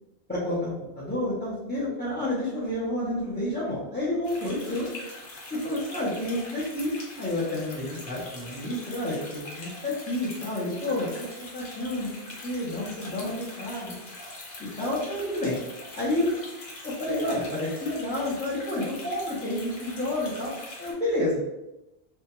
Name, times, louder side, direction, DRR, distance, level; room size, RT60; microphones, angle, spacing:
voice 1, 0.3-4.9 5.5-6.9 7.2-11.1 11.4-12.1 12.4-13.9 14.8-15.6 15.9-16.3 16.8-20.5 20.8-21.4, left 1 dB, 15° left, -10 dB, 0.3 m, -29 dB
sound 1, 4.2-20.9, left 2 dB, 70° left, 0.9 m, -43 dB
2.2 x 2.1 x 2.9 m, 0.94 s
omnidirectional pair, 1.1 m